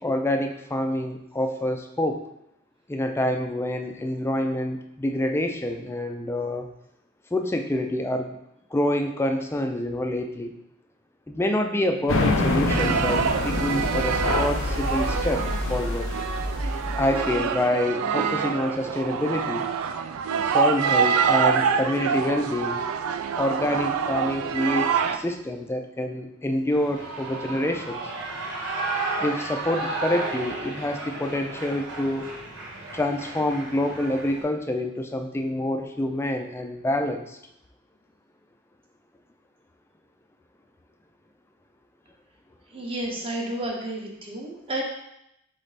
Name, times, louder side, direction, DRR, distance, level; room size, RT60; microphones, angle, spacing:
voice 1, 0.0-2.2 2.9-6.7 7.3-8.4 8.7-10.5 11.3-16.1 16.9-19.7 20.4-22.8 23.4-28.0 29.2-32.3 32.9-37.4, left 1 dB, 10° left, 5 dB, 0.3 m, -27 dB
sound 1, 12.1-17.4, left 2 dB, 70° left, 0.5 m, -26 dB
sound 2, 12.7-25.2, right 6 dB, 85° right, 0.3 m, -26 dB
Shout / Cheering, 26.7-34.4, right 3 dB, 65° right, 1.1 m, -33 dB
voice 2, 42.7-44.8, right 1 dB, 25° right, -1 dB, 0.8 m, -31 dB
4.0 x 3.3 x 4.0 m, 0.82 s
head